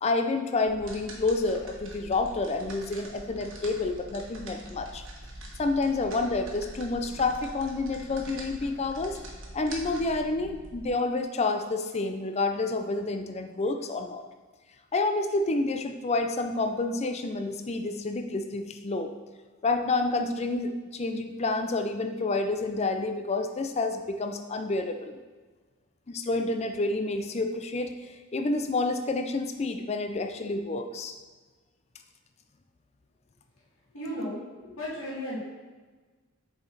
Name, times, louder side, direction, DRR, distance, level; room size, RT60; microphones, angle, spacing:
voice 1, 0.0-5.0 5.6-9.2 9.5-14.2 14.9-19.1 19.6-25.2 26.1-27.9 28.3-31.1, left 3 dB, 30° left, 6 dB, 0.4 m, -29 dB
sound 1, 0.7-10.9, right 1 dB, 65° right, 1.3 m, -44 dB
voice 2, 33.9-34.4 34.6-35.4, equal, 80° left, -7 dB, 2.1 m, -34 dB
7.2 x 5.0 x 4.0 m, 1.3 s
head